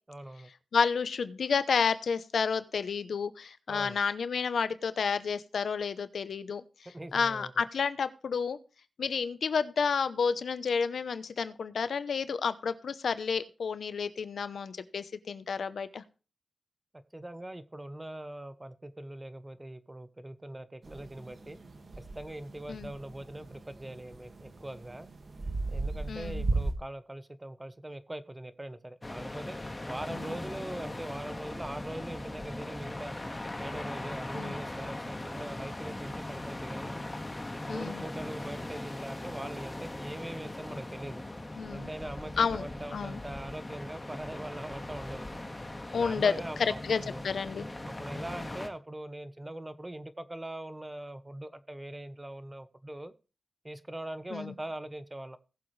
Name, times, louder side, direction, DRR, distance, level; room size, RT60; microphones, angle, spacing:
voice 1, 0.1-0.5 3.7-4.0 6.9-7.5 17.1-21.6 22.0-25.1 25.7-29.6 29.9-33.1 33.6-37.0 37.6-41.2 41.7-45.3 45.9-47.2 47.7-53.1 53.6-55.4, right 1 dB, 20° right, 12 dB, 1.0 m, -42 dB
voice 2, 0.7-6.6 7.1-8.6 9.0-16.0 22.7-22.9 26.1-26.5 30.1-30.3 34.3-34.5 37.7-38.0 41.6-41.9 42.4-43.2 45.9-46.3 46.8-47.6 54.3-54.5, left 5 dB, 85° left, 12 dB, 0.8 m, -30 dB
sound 1, 20.8-26.7, right 3 dB, 60° right, 2.0 m, -36 dB
sound 2, 29.0-48.7, left 1 dB, 25° left, 1.8 m, -40 dB
19.0 x 7.1 x 3.3 m, 0.34 s
cardioid pair, 65°, 0 cm